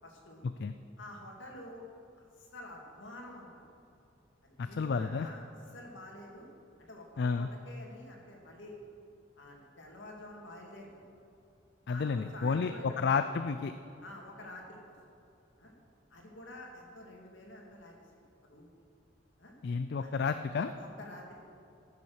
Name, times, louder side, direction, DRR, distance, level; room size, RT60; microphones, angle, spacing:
voice 1, 0.0-0.4 1.0-1.8 2.4-3.6 4.4-5.5 5.7-6.5 6.8-8.8 9.4-10.9 11.9-13.2 14.0-14.9 15.6-15.7 16.1-18.0 18.4-18.7 19.4-19.5 20.0-20.2 20.6-21.4, left 1 dB, 75° left, 0 dB, 2.3 m, -49 dB
voice 2, 4.6-5.3 7.2-7.5 11.9-13.7 19.6-20.7, left 5 dB, 60° left, 9 dB, 0.4 m, -31 dB
14.5 x 7.1 x 6.5 m, 2.5 s
head